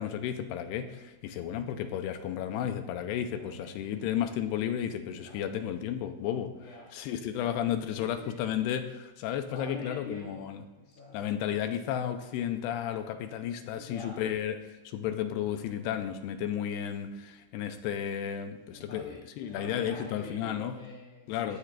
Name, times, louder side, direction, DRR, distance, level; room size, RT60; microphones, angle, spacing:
voice 1, 0.0-6.6 6.9-10.6 11.1-20.8 21.3-21.6, left 9 dB, 85° left, 7 dB, 2.8 m, -33 dB
voice 2, 3.3-3.7 5.2-5.5 6.4-6.9 7.9-8.4 9.5-11.2 13.7-14.2 18.7-21.6, left 2 dB, 60° left, -8 dB, 4.2 m, -46 dB
19.0 x 13.5 x 2.5 m, 1.1 s
omnidirectional pair, 4.7 m